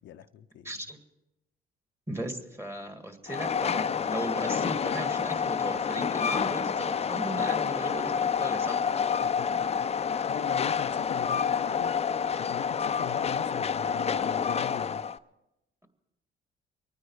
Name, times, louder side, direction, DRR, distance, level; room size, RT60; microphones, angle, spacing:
voice 1, 0.0-0.7 9.2-9.9 10.3-12.0 12.4-15.0, left 10 dB, 75° left, 0.6 m, -41 dB
voice 2, 0.6-1.0 2.1-8.9, right 1 dB, 15° right, 2.0 m, -37 dB
Train, 3.3-15.2, left 7 dB, 30° left, 0.5 m, -28 dB
23.5 x 9.6 x 4.8 m
cardioid pair, 90°, 20 cm